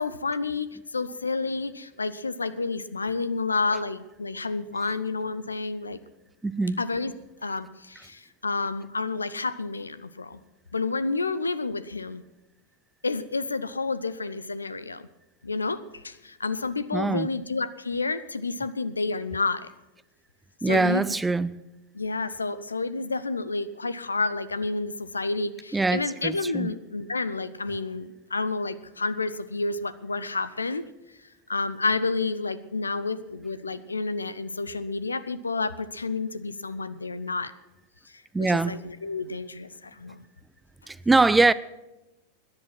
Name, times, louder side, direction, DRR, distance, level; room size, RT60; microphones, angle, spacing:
voice 1, 0.0-6.0 6.8-7.1 7.4-10.4 10.7-12.2 13.0-15.1 15.4-19.7 20.6-21.1 21.9-30.8 31.5-37.5 38.1-40.2, left 3 dB, 75° left, 0.7 m, -30 dB
voice 2, 6.4-6.8 16.9-17.3 20.6-21.5 25.7-26.7 38.3-38.8 40.9-41.5, right 3 dB, 10° right, 0.5 m, -23 dB
17.5 x 10.5 x 6.1 m
figure-of-eight pair, 90°, 0 cm